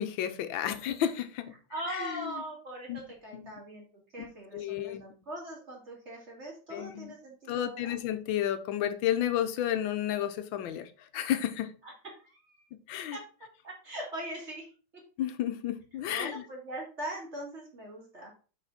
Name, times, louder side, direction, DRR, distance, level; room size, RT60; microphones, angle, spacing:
voice 1, 0.0-1.5 1.9-2.3 2.9-3.0 3.3-3.5 4.2-4.3 4.5-5.0 6.7-7.1 7.5-11.7 12.9-13.2 15.2-16.4, left 11 dB, 85° left, 1.5 m, -32 dB
voice 2, 1.7-3.8 4.1-8.0 11.8-12.7 13.1-13.2 13.6-14.7 16.1-18.3, right 1 dB, 35° right, 2.5 m, -41 dB
5.7 x 5.1 x 4.1 m
omnidirectional pair, 2.1 m